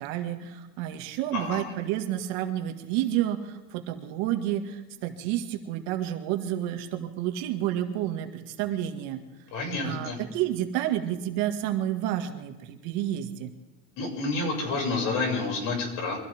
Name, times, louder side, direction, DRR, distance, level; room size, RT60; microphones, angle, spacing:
voice 1, 0.0-9.2 9.8-13.5, right 12 dB, 60° right, 5 dB, 2.0 m, -30 dB
voice 2, 1.3-1.6 9.5-10.2 14.0-16.2, left 3 dB, 55° left, 0 dB, 6.6 m, -29 dB
24.0 x 15.0 x 3.6 m, 1.1 s
supercardioid pair, 140°, 39 cm